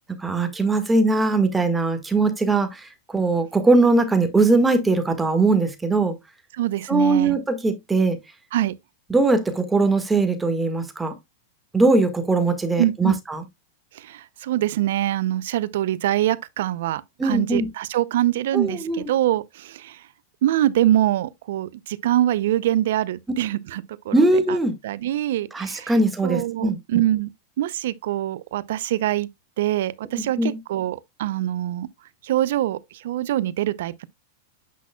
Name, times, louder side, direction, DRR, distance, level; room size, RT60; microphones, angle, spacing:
voice 1, 0.2-6.1 6.9-8.2 9.1-11.1 11.7-13.4 17.2-17.7 18.5-19.1 24.1-24.7 25.5-26.8 30.1-30.6, right 3 dB, 10° right, 1.6 m, -20 dB
voice 2, 6.5-7.4 8.5-8.7 12.8-13.2 13.9-20.0 20.4-24.6 24.8-25.9 26.2-27.3 27.6-29.3 29.6-31.9 32.2-34.1, right 13 dB, 70° right, 0.6 m, -24 dB
8.3 x 5.9 x 2.3 m
hypercardioid pair, 125°, 0 cm